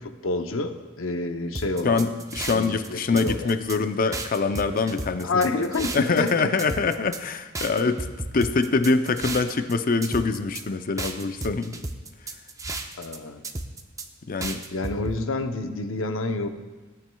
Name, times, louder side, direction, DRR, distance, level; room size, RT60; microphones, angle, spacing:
voice 1, 0.0-2.0 2.5-3.5 5.2-6.5 7.8-7.9 13.0-13.4 14.7-16.5, left 3 dB, 75° left, 7 dB, 0.8 m, -28 dB
sound 1, 1.5-2.9 3.2-3.8 4.1-6.3 6.6-7.2 7.5-9.7 10.0-10.6 11.0-13.2 13.4-14.1 14.4-15.2, right 2 dB, 15° right, 0.5 m, -33 dB
voice 2, 1.8-5.5 5.9-8.1 8.3-11.8 14.3-14.6, left 4 dB, 45° left, 9 dB, 0.5 m, -24 dB
17.5 x 9.1 x 2.3 m, 1.3 s
head